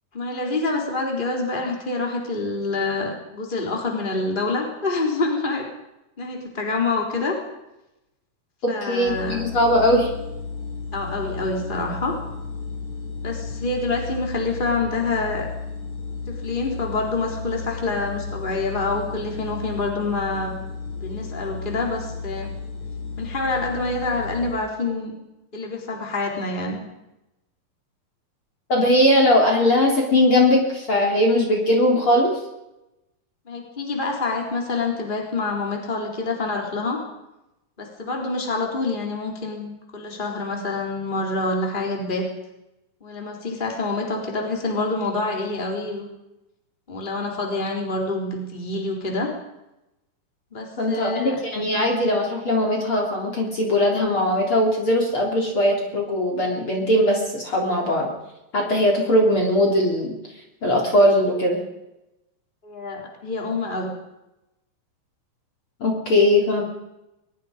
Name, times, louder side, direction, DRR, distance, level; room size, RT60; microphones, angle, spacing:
voice 1, 0.1-5.6 6.2-7.4 8.7-9.4 10.9-12.2 13.2-15.5 16.3-20.5 21.0-22.5 23.2-25.1 25.5-26.8 33.5-37.0 37.8-42.2 43.0-46.0 46.9-49.3 50.5-51.4 62.6-63.9, left 3 dB, 15° left, 0 dB, 3.9 m, -27 dB
voice 2, 8.6-10.1 28.7-32.4 50.8-58.1 58.5-60.2 60.6-61.6 65.8-66.6, left 1 dB, 35° left, 0 dB, 4.0 m, -20 dB
sound 1, 9.1-24.5, left 4 dB, 55° left, 8.8 m, -33 dB
23.0 x 22.5 x 5.2 m, 0.93 s
omnidirectional pair, 4.1 m